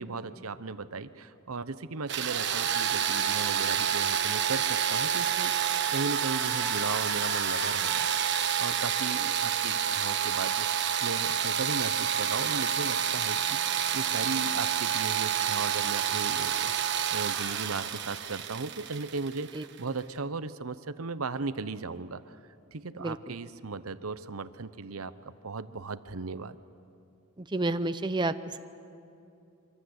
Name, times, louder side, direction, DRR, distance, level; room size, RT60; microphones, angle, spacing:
voice 1, 0.0-8.1 8.6-22.4 22.7-26.6, right 4 dB, 85° right, 13 dB, 0.9 m, -37 dB
sound 1, 2.1-19.8, right 8 dB, 55° right, 1.2 m, -29 dB
voice 2, 23.0-23.3 27.5-28.6, right 2 dB, 20° right, 10 dB, 0.6 m, -30 dB
25.0 x 24.5 x 8.0 m, 2.6 s
head